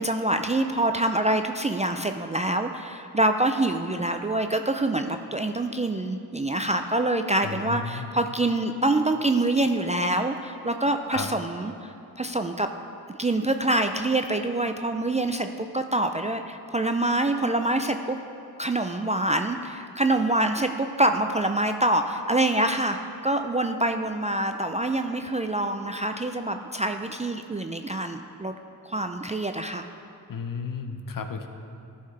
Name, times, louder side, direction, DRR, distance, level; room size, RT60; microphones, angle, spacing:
voice 1, 0.0-12.7 13.1-18.2 18.6-23.0 23.2-28.5 28.8-29.9, right 1 dB, 20° right, 6 dB, 0.4 m, -25 dB
voice 2, 7.4-8.1 11.1-11.3 30.3-31.5, left 5 dB, 50° left, 7 dB, 0.8 m, -33 dB
13.0 x 5.6 x 3.3 m, 2.7 s
cardioid pair, 45°, 41 cm